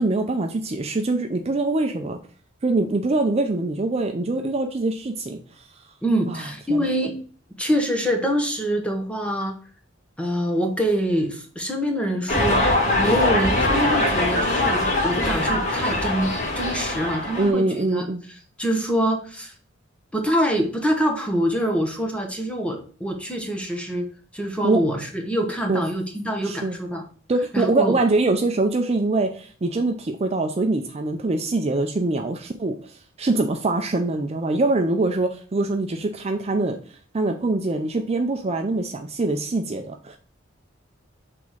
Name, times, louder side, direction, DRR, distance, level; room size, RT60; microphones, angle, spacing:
voice 1, 0.0-2.2 2.6-5.4 6.3-6.8 17.4-18.2 24.6-24.8 25.7-25.8 26.4-26.8 27.3-36.8 37.1-40.2, right 2 dB, 30° right, 4 dB, 0.5 m, -23 dB
voice 2, 6.0-7.2 7.6-9.5 10.2-12.7 13.0-18.0 18.6-19.5 20.1-24.1 24.3-27.0 27.5-28.0, equal, 5° left, 3 dB, 1.2 m, -25 dB
sound 1, 12.3-17.5, left 1 dB, 40° left, 1.7 m, -22 dB
6.0 x 3.6 x 4.6 m, 0.43 s
head